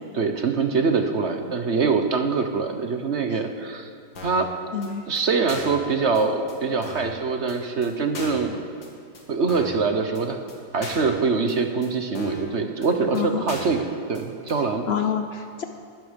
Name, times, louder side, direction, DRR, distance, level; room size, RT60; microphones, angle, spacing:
voice 1, 0.1-3.9 4.2-4.5 5.1-8.6 9.3-10.4 10.7-13.8 14.1-14.8, right 4 dB, 45° right, 6 dB, 1.1 m, -24 dB
sound 1, 4.2-4.5 4.8-4.9 5.2-5.3 5.5-5.8 6.2-6.3 6.5-6.6 6.8-7.1 7.5-7.6 7.8-7.9 8.1-8.5 8.8-8.9 9.1-9.2 9.5-9.8 10.2-10.3 10.5-10.6 10.8-11.1 11.5-11.6 11.8-11.9 12.2-12.5 12.8-12.9 13.1-13.2 13.5-13.8 14.1-14.2 14.5-14.6, left 2 dB, 85° left, 3.0 m, -38 dB
voice 2, 4.7-5.0 13.1-13.6 14.9-15.6, left 8 dB, 70° left, 6 dB, 0.6 m, -27 dB
19.5 x 12.5 x 5.2 m, 2.3 s
omnidirectional pair, 2.0 m